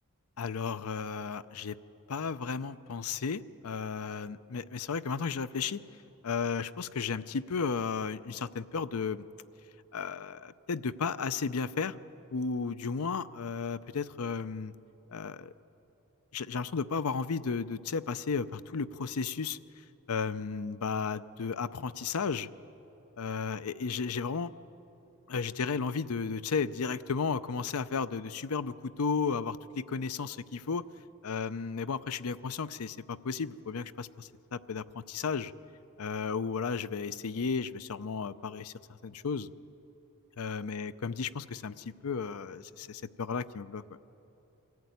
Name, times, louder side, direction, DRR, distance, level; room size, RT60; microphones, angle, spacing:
voice 1, 0.4-1.8 2.1-5.8 6.2-9.2 9.9-12.0 12.3-14.7 15.1-15.5 16.3-19.6 20.1-22.5 23.2-24.5 25.3-30.8 31.2-35.5 36.0-38.7 39.0-39.5 40.4-43.8, left 5 dB, 70° left, 15 dB, 0.6 m, -34 dB
24.0 x 14.0 x 9.4 m, 3.0 s
head